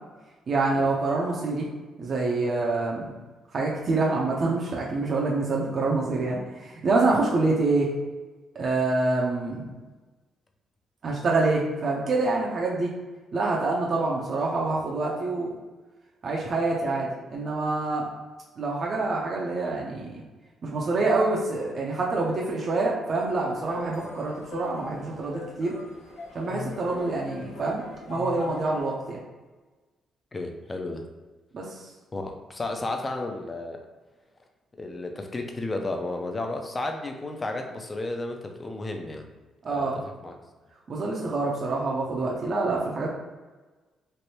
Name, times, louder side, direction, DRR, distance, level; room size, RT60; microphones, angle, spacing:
voice 1, 0.5-1.7 2.0-3.1 3.5-7.9 8.5-9.7 11.0-12.9 13.3-15.5 16.2-18.1 18.6-20.2 20.6-25.7 26.3-29.2 31.5-31.9 39.6-40.0 40.9-43.1, right 3 dB, 50° right, -3 dB, 0.5 m, -26 dB
sound 1, 23.2-28.8, left 3 dB, 65° left, 0.7 m, -40 dB
voice 2, 30.3-31.0 32.1-33.8 34.7-39.3 39.7-40.4, left 2 dB, 25° left, 4 dB, 0.5 m, -33 dB
3.3 x 2.6 x 2.8 m, 1.3 s
cardioid pair, 90°, 0 cm